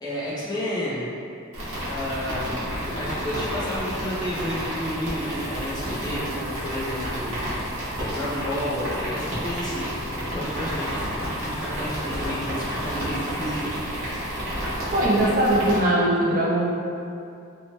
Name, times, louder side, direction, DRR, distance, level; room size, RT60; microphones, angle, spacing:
voice 1, 0.0-1.1 1.9-9.9 10.2-14.0, equal, 20° left, -9 dB, 0.5 m, -31 dB
sound 1, 1.5-15.8, equal, 70° right, 0.9 m, -30 dB
voice 2, 14.9-16.7, right 1 dB, 45° right, -5 dB, 0.4 m, -20 dB
3.0 x 2.1 x 2.9 m, 2.5 s
head